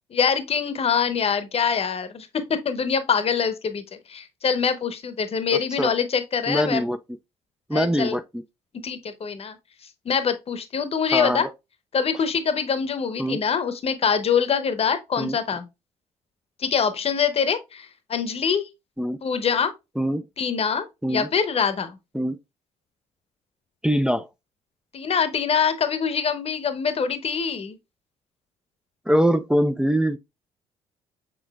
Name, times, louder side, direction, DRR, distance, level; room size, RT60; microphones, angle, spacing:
voice 1, 0.1-3.8 4.1-6.8 7.7-8.2 8.8-9.5 10.0-11.5 11.9-15.7 16.6-18.7 19.2-19.7 20.4-22.0 24.9-27.8, left 6 dB, 40° left, 0.9 m, -24 dB
voice 2, 6.5-7.0 7.7-8.4 11.1-11.5 13.2-13.4 15.2-15.4 19.0-19.2 20.0-20.2 21.0-21.3 22.1-22.4 23.8-24.3 29.1-30.2, equal, 5° right, 0.4 m, -23 dB
6.1 x 3.8 x 2.3 m
supercardioid pair, 60°, 15 cm